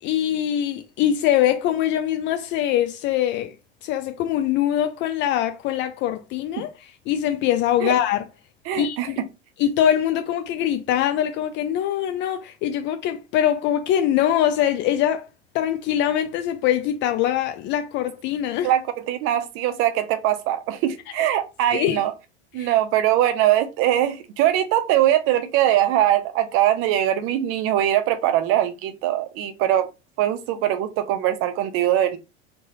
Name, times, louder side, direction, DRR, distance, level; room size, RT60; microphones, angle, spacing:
voice 1, 0.0-3.5 3.8-8.2 8.7-9.2 9.6-15.3 15.5-18.7 21.7-22.0 22.6-22.7, left 11 dB, 35° left, 0.4 m, -23 dB
voice 2, 8.7-9.1 18.6-22.1 22.5-29.9 30.2-32.2, right 12 dB, 45° right, 0.6 m, -22 dB
3.9 x 2.3 x 2.8 m
figure-of-eight pair, 80°, 32 cm